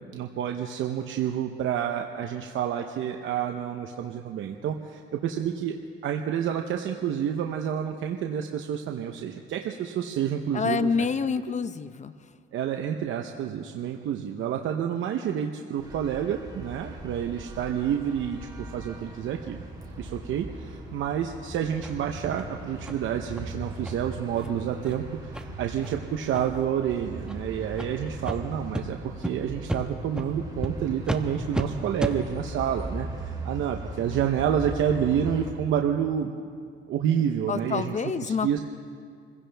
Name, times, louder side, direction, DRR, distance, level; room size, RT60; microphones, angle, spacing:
voice 1, 0.0-5.8 6.0-11.1 12.5-18.4 18.7-19.6 20.0-36.4 36.9-38.6, right 9 dB, 75° right, 3 dB, 0.9 m, -29 dB
voice 2, 10.5-12.1 37.5-38.6, left 5 dB, 35° left, 13 dB, 0.7 m, -27 dB
sound 1, 15.8-35.5, right 1 dB, 20° right, 3.7 m, -39 dB
sound 2, 21.8-21.9 22.4-22.5 22.8-23.0 23.3-23.4 23.8-23.9 24.3-24.5 24.8-24.9 25.3-25.4 25.8-26.0 26.3-26.6 27.2-27.4 27.8-27.9 28.2-28.4 28.7-28.8 29.2-29.3 29.7-29.8 30.2-30.3 30.6-30.7 31.0-31.2 31.5-31.6 32.0-32.1, right 1 dB, 5° right, 1.1 m, -31 dB
26.0 x 16.0 x 3.4 m, 2.2 s
cardioid pair, 90°, 20 cm